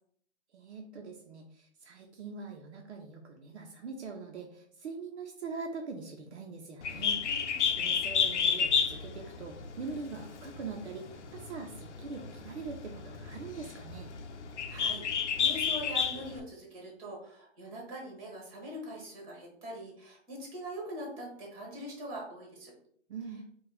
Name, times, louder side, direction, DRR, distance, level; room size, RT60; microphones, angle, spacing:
voice 1, 0.5-7.2 7.5-14.1 23.1-23.4, right 4 dB, 70° right, 2 dB, 0.8 m, -43 dB
Bird, 6.8-16.4, left 7 dB, 75° left, 0.7 m, -31 dB
voice 2, 7.2-7.6 14.7-22.7, equal, 30° right, -1 dB, 1.7 m, -43 dB
4.2 x 2.4 x 4.1 m, 0.65 s
hypercardioid pair, 165°, 35 cm